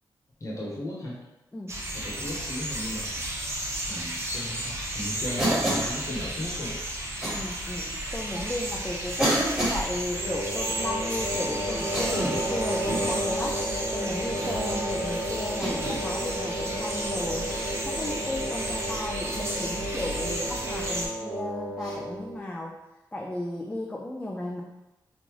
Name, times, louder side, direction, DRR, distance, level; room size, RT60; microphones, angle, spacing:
voice 1, 0.4-1.2 1.9-3.2 3.9-6.8, left 1 dB, 40° left, -3 dB, 1.1 m, -36 dB
voice 2, 1.5-1.8 7.3-9.4 9.7-13.6 13.9-17.5 17.8-22.7 23.1-24.6, left 1 dB, 15° left, -2 dB, 0.4 m, -34 dB
sound 1, 1.7-21.1, right 1 dB, 35° right, 0.7 m, -33 dB
Cough, 5.4-6.0 7.2-7.4 8.3-8.4 9.2-9.8 11.8-12.4 12.8-13.1 14.2-14.6 15.6-16.0 17.4-17.7 19.9-20.1 21.8-22.0, right 1 dB, 10° right, 1.4 m, -28 dB
sound 2, 10.1-22.4, equal, 80° right, 1.0 m, -32 dB
3.7 x 2.5 x 3.0 m, 0.98 s
wide cardioid pair, 95°, 8 cm